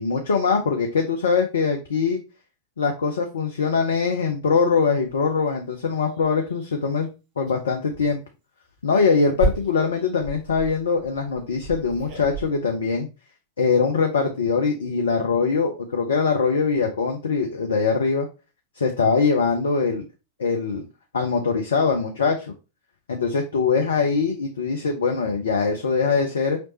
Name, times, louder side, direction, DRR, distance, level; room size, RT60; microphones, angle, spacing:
voice 1, 0.0-2.2 2.8-7.1 7.4-8.2 8.8-13.1 13.6-18.3 18.8-20.0 20.4-20.8 21.1-22.5 23.1-26.6, left 5 dB, 65° left, 4 dB, 0.6 m, -22 dB
sound 1, 5.1-5.2 5.7-5.8 6.2-6.6 7.4-7.6 7.9-8.1 8.7-12.5, right 2 dB, 40° right, 2.8 m, -31 dB
5.0 x 3.1 x 3.0 m, 0.30 s
figure-of-eight pair, 90°, 0 cm